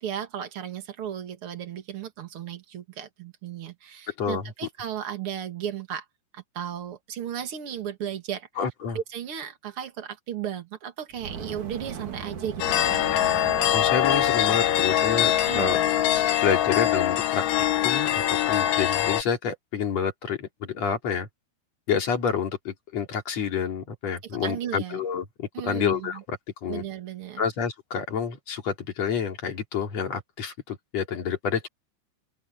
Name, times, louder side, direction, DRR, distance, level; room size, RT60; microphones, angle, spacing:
voice 1, 0.0-6.0 6.3-8.5 8.9-12.8 15.4-15.9 24.3-25.0 25.5-26.2 26.7-27.4, right 9 dB, 80° right, 1.2 m, -35 dB
voice 2, 8.6-9.0 13.7-15.8 16.4-17.4 17.8-21.3 21.9-26.8 27.4-31.7, left 7 dB, 40° left, 3.5 m, -28 dB
Fire, 11.1-16.4, right 6 dB, 45° right, 3.7 m, -39 dB
sound 1, 12.6-19.2, left 12 dB, 75° left, 3.6 m, -23 dB
open air
omnidirectional pair, 5.5 m